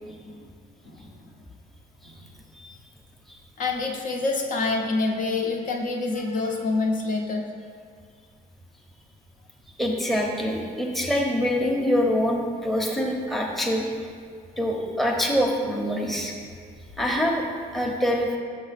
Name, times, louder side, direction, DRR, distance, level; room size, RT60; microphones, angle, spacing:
voice 1, 0.0-0.4 3.6-7.5, left 3 dB, 50° left, 1 dB, 0.8 m, -26 dB
voice 2, 9.8-13.9 14.6-16.3 17.0-17.4 17.7-18.3, equal, ahead, -1 dB, 0.8 m, -25 dB
6.2 x 5.4 x 4.1 m, 2.2 s
cardioid pair, 110°, 17 cm